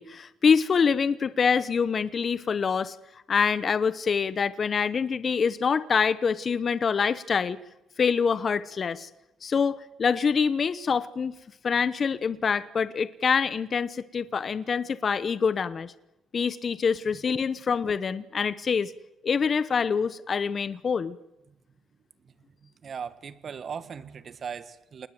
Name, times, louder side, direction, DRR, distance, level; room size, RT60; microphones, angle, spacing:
voice 1, 0.0-2.9 3.3-7.6 8.0-9.1 9.4-11.3 11.6-15.9 16.3-18.9 19.2-21.2, left 6 dB, 45° left, 0.9 m, -25 dB
voice 2, 22.6-25.1, right 6 dB, 50° right, 1.7 m, -39 dB
27.5 x 20.0 x 7.8 m
cardioid pair, 90°, 0 cm